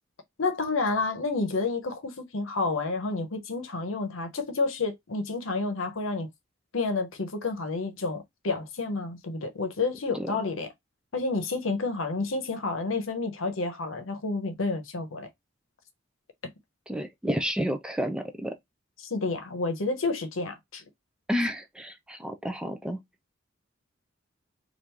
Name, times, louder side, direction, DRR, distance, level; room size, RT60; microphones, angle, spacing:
voice 1, 0.4-6.3 6.7-10.7 11.1-15.3 19.0-20.8, left 3 dB, 80° left, 0.8 m, -30 dB
voice 2, 16.9-18.5 21.3-23.0, equal, 5° right, 0.3 m, -30 dB
3.0 x 2.5 x 3.4 m
head